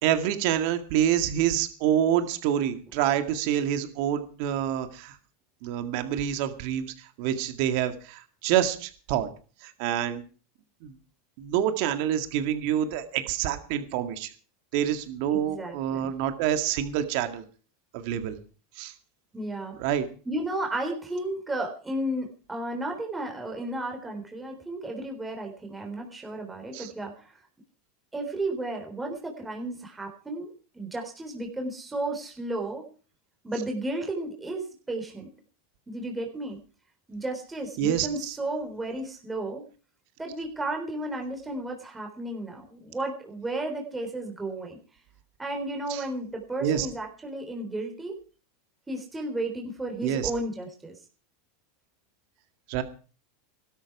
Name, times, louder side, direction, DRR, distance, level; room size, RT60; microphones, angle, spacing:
voice 1, 0.0-5.2 5.6-9.3 9.6-10.2 10.8-10.9 11.4-14.3 14.7-17.4 17.9-18.4 18.8-18.9 19.8-20.0 26.7-26.9 37.8-38.4 45.9-46.0 46.6-46.9 50.0-50.3 52.7-52.8, right 10 dB, 60° right, 9 dB, 2.0 m, -27 dB
voice 2, 15.3-16.1 19.3-19.8 20.3-27.4 28.1-32.9 33.4-35.3 35.9-36.6 37.1-39.6 40.2-44.8 45.4-48.2 48.9-51.0, right 1 dB, 15° right, 2 dB, 3.7 m, -33 dB
17.0 x 13.0 x 4.7 m, 0.39 s
hypercardioid pair, 105°, 0 cm